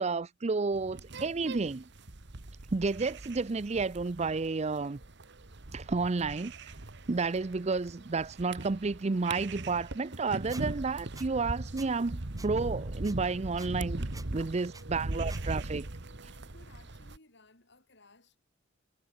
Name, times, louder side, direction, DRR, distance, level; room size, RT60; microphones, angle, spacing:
voice 1, 0.0-1.9 2.7-5.0 5.7-6.5 7.1-15.9, right 4 dB, 35° right, 0.5 m, -31 dB
sound 1, 0.7-17.2, right 2 dB, 60° right, 1.6 m, -40 dB
Squeak, 10.5-10.6 11.1-11.3 11.8-11.9 12.4-12.5 13.0-13.1 13.6-13.7 14.1-14.3 14.7-14.8 15.3-15.4, right 4 dB, 20° right, 3.5 m, -48 dB
voice 2, 16.1-18.4, left 2 dB, 60° left, 7.6 m, -60 dB
head